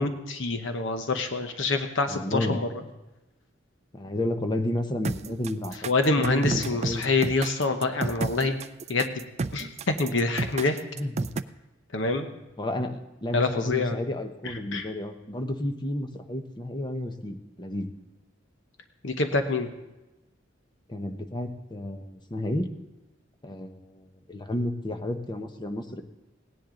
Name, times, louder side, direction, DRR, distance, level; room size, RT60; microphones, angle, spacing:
voice 1, 0.0-2.7 5.9-8.5 8.9-9.2 9.5-10.8 11.9-12.3 13.3-14.0 14.4-14.9 19.0-19.7, left 3 dB, 65° left, 6 dB, 1.0 m, -26 dB
voice 2, 2.1-2.6 3.9-5.7 6.2-7.0 11.0-11.3 12.6-17.9 20.9-22.7 23.4-26.0, left 1 dB, 25° left, 6 dB, 0.9 m, -31 dB
sound 1, 5.0-11.4, right 3 dB, 35° right, 0.4 m, -31 dB
17.5 x 10.5 x 3.8 m, 1.0 s
head